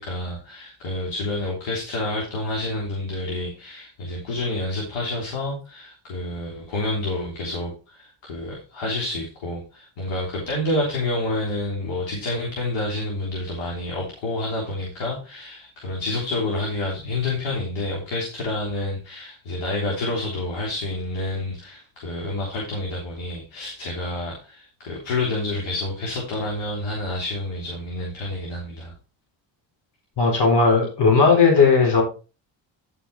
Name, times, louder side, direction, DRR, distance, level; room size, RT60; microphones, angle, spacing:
voice 1, 0.0-28.9, left 2 dB, 85° left, -1 dB, 3.6 m, -28 dB
voice 2, 30.2-32.0, left 4 dB, 60° left, 1 dB, 4.1 m, -16 dB
11.0 x 6.1 x 4.3 m, 0.33 s
cardioid pair, 90°, 45 cm